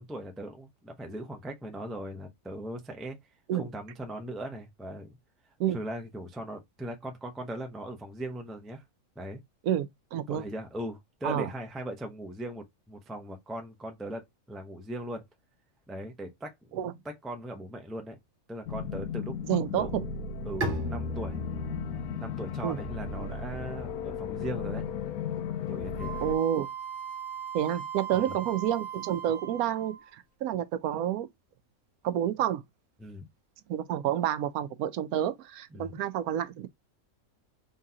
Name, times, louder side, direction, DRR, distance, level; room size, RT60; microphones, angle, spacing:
voice 1, 0.0-3.2 3.5-5.2 5.7-8.8 9.2-9.4 10.3-15.2 15.9-18.2 18.5-19.3 19.6-20.0 20.4-21.4 22.2-24.9 25.7-26.2 28.1-28.4 33.0-33.3 35.7-36.0, right 1 dB, ahead, 0.4 m, -39 dB
voice 2, 9.6-10.4 11.2-11.5 16.7-16.9 19.5-20.0 22.6-22.8 26.2-26.7 27.5-30.0 30.4-31.3 32.0-32.6 33.7-36.7, right 10 dB, 90° right, 1.1 m, -29 dB
sound 1, 18.7-26.4, left 6 dB, 85° left, 1.1 m, -35 dB
Bowed string instrument, 20.6-26.2, equal, 40° right, 1.1 m, -39 dB
Wind instrument woodwind instrument, 26.0-30.1, right 8 dB, 45° left, 1.2 m, -39 dB
3.9 x 3.7 x 2.8 m
omnidirectional pair, 1.5 m